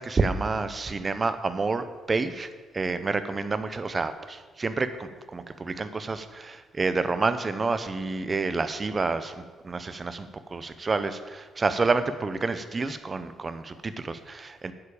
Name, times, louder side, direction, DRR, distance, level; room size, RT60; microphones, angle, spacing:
voice 1, 0.0-2.5 2.7-14.7, right 3 dB, 30° right, 11 dB, 0.9 m, -29 dB
9.6 x 8.4 x 7.1 m, 1.4 s
cardioid pair, 110°, 0 cm